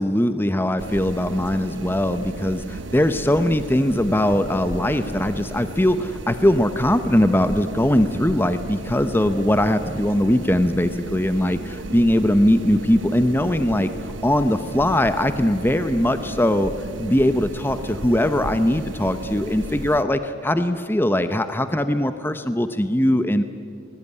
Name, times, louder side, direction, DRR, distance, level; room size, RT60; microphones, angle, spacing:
voice 1, 0.0-16.7 17.0-23.4, left 1 dB, 10° left, 10 dB, 0.8 m, -21 dB
sound 1, 0.8-20.0, right 2 dB, 75° right, 1.1 m, -34 dB
25.5 x 20.5 x 9.9 m, 2.3 s
head